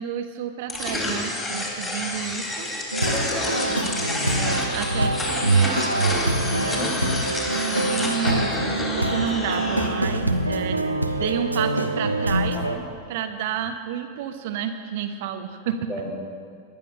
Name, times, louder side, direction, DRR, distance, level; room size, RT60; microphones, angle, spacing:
voice 1, 0.0-2.7 4.4-5.9 6.2-6.8 7.7-12.6 13.1-15.9, right 9 dB, 50° right, 7 dB, 1.0 m, -31 dB
sound 1, 0.7-9.9, left 1 dB, 15° left, 3.7 m, -29 dB
sound 2, 2.9-12.8, right 2 dB, 85° right, 0.9 m, -25 dB
voice 2, 3.0-3.8 6.7-7.2 12.5-12.8 15.9-16.1, left 1 dB, 40° left, -2 dB, 4.2 m, -32 dB
20.0 x 10.5 x 5.5 m, 2.1 s
figure-of-eight pair, 90°, 0 cm